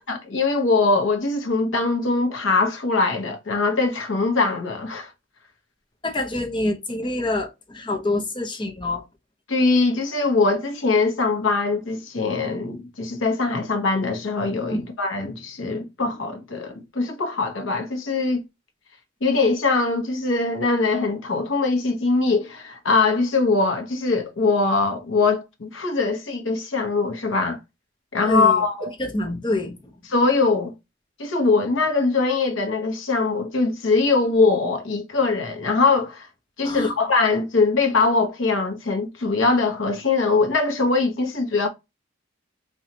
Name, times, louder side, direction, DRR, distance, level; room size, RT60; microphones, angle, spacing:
voice 1, 0.1-5.1 9.5-18.4 19.2-27.6 28.1-28.9 30.1-30.7 31.2-36.3 36.6-41.7, left 3 dB, 80° left, 0.9 m, -22 dB
voice 2, 6.0-9.0 14.7-14.8 28.3-28.6 29.0-29.8 36.6-36.9, left 2 dB, 25° left, 0.7 m, -26 dB
4.1 x 2.3 x 2.8 m
head